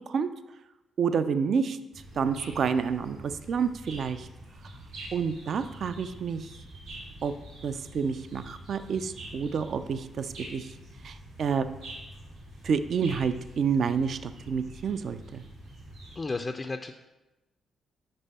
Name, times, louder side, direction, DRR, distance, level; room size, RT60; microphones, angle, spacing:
voice 1, 1.0-1.8 2.2-4.3 5.1-6.5 7.2-7.3 7.6-10.7 11.0-11.7 12.6-15.4, right 6 dB, 60° right, 11 dB, 0.4 m, -29 dB
sound 1, 1.9-16.2, right 1 dB, 90° right, 2.1 m, -46 dB
voice 2, 16.2-16.9, left 3 dB, 35° left, 5 dB, 0.4 m, -33 dB
5.4 x 5.0 x 4.1 m, 1.0 s
supercardioid pair, 55°, 0 cm